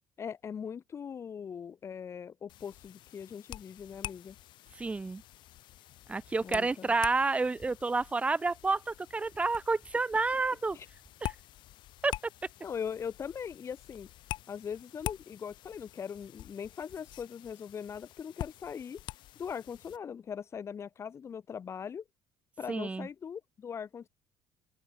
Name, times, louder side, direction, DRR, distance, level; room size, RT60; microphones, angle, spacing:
voice 1, 0.2-4.4 6.4-6.9 10.7-10.9 12.6-14.1 14.5-19.0 19.4-22.0 22.6-24.1, left 7 dB, 30° left, 2.8 m, -40 dB
sound 1, 2.5-20.0, left 14 dB, 65° left, 7.3 m, -46 dB
voice 2, 4.8-5.2 6.1-10.8 11.2-11.3 12.0-12.1 22.7-23.1, right 3 dB, 15° right, 1.8 m, -29 dB
open air
cardioid pair, 150°, 9 cm